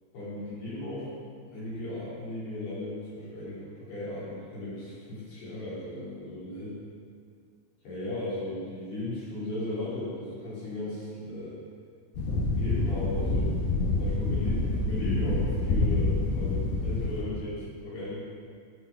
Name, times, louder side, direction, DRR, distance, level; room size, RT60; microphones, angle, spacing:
voice 1, 0.1-1.1 1.5-6.7 7.8-11.6 12.6-13.5 14.0-18.2, left 1 dB, 55° left, -10 dB, 4.7 m, -36 dB
sound 1, 12.1-17.2, left 2 dB, 75° left, 2.1 m, -27 dB
13.5 x 6.4 x 4.5 m, 2.1 s
omnidirectional pair, 5.7 m